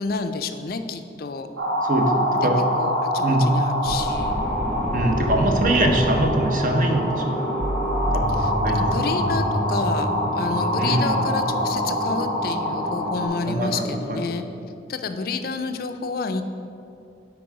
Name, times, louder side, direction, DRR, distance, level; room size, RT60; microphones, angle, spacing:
voice 1, 0.0-1.5 2.8-4.4 8.4-14.5 14.9-16.4, left 4 dB, 50° left, 8 dB, 0.4 m, -29 dB
sound 1, 1.6-13.3, equal, 85° right, 1.3 m, -26 dB
voice 2, 1.8-2.6 3.2-3.4 4.9-7.4 8.1-8.3 8.6-8.8 10.8-11.2 13.4-13.8 14.1-14.2, right 1 dB, 45° right, 3 dB, 0.7 m, -22 dB
sound 2, 3.8-14.3, equal, 5° left, 0.8 m, -28 dB
7.7 x 4.7 x 4.8 m, 2.6 s
head